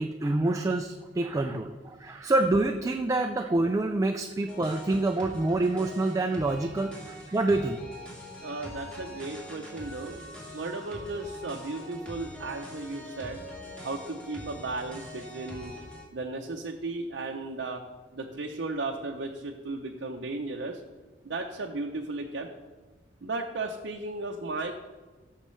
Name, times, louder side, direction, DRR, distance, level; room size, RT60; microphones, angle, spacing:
voice 1, 0.0-7.8, right 2 dB, 15° right, 5 dB, 0.3 m, -27 dB
sound 1, 4.5-16.0, equal, 5° left, 2.1 m, -44 dB
voice 2, 8.4-10.2 10.5-13.4 13.8-15.7 16.1-17.8 18.1-20.8 21.2-22.5 23.2-24.7, right 3 dB, 65° right, 1 dB, 0.6 m, -35 dB
14.0 x 6.6 x 3.2 m, 1.3 s
head